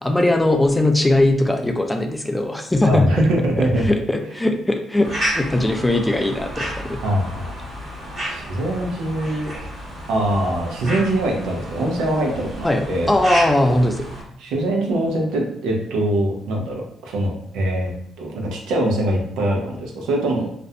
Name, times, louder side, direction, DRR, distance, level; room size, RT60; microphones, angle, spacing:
voice 1, 0.0-3.1 3.6-7.0 12.6-14.1, left 1 dB, 10° left, 4 dB, 0.3 m, -20 dB
voice 2, 2.9-3.8 7.0-7.5 8.3-9.5 10.1-13.2 14.4-17.9 18.2-20.5, right 1 dB, 90° right, 0 dB, 0.6 m, -22 dB
sound 1, 5.0-14.2, equal, 40° right, 1.1 m, -31 dB
2.5 x 2.1 x 2.6 m, 0.70 s
cardioid pair, 90°, 0 cm